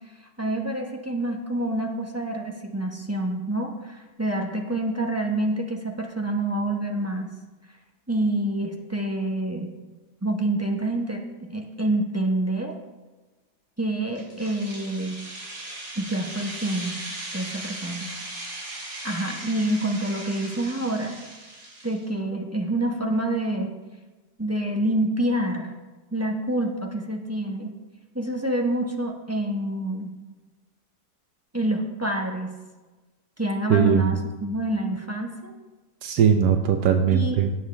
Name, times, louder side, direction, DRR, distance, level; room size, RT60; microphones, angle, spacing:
voice 1, 0.4-7.3 8.1-9.7 10.2-11.2 11.5-12.7 13.8-15.2 16.0-17.0 17.3-18.1 19.0-21.2 21.8-23.8 24.4-25.7 26.1-27.7 28.1-30.1 31.5-32.6 33.4-35.5 37.1-37.4, right 1 dB, 10° right, 1 dB, 0.7 m, -27 dB
sound 1, 14.2-22.0, right 2 dB, 45° right, 2.9 m, -38 dB
voice 2, 33.7-34.2 36.0-37.6, right 7 dB, 80° right, 5 dB, 1.3 m, -20 dB
17.0 x 7.4 x 3.4 m, 1.2 s
omnidirectional pair, 1.7 m